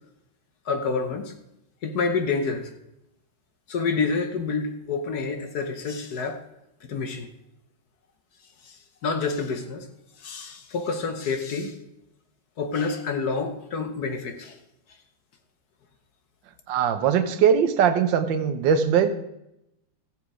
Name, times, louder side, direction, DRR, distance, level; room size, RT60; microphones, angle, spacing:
voice 1, 0.7-1.3 1.8-2.7 3.7-6.4 6.9-7.3 8.7-8.8 9.0-9.8 10.2-11.8 12.6-14.6, left 4 dB, 60° left, 7 dB, 1.4 m, -28 dB
voice 2, 16.7-19.2, right 7 dB, 75° right, 8 dB, 1.5 m, -21 dB
14.5 x 7.1 x 4.9 m, 0.85 s
omnidirectional pair, 2.1 m